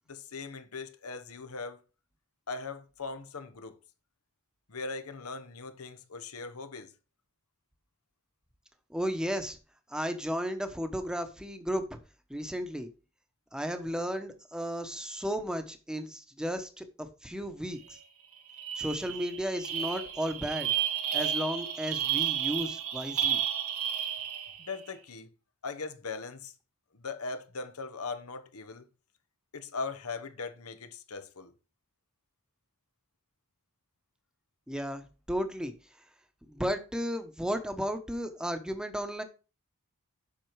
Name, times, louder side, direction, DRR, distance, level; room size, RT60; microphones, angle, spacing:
voice 1, 0.1-1.8 2.5-3.8 4.7-6.9 24.6-25.3 25.6-26.5 26.9-28.8 29.5-31.5, left 4 dB, 80° left, 1.1 m, -39 dB
voice 2, 8.9-9.6 9.9-12.0 12.3-12.9 13.5-17.8 18.8-20.7 21.1-23.4 34.7-35.7 36.5-39.2, equal, 5° right, 1.0 m, -34 dB
sound 1, 17.9-18.0 18.3-24.7, right 9 dB, 85° right, 1.3 m, -32 dB
7.8 x 6.0 x 4.8 m
head